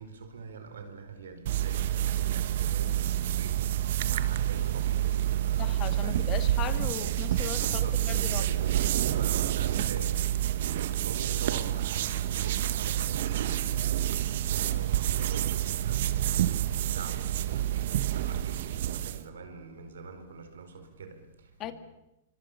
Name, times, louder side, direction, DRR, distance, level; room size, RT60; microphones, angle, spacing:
voice 1, 0.0-6.4 7.6-10.6 10.9-21.7, right 5 dB, 85° right, 5.0 m, -44 dB
sound 1, 1.5-19.3, right 12 dB, 65° right, 1.5 m, -28 dB
voice 2, 5.6-8.4 21.6-21.7, left 11 dB, 35° left, 2.1 m, -37 dB
27.0 x 24.5 x 7.0 m
hypercardioid pair, 120°, 0 cm